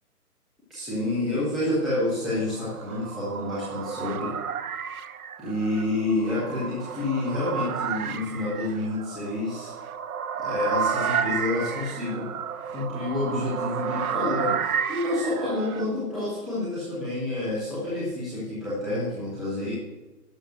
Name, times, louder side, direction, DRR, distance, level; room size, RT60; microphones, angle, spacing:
voice 1, 0.7-4.3 5.4-9.7 10.4-12.3 12.7-19.7, left 2 dB, ahead, -10 dB, 0.6 m, -28 dB
sound 1, 2.4-15.9, right 7 dB, 65° right, 0.8 m, -31 dB
11.5 x 6.4 x 6.2 m, 1.1 s
hypercardioid pair, 145°, 47 cm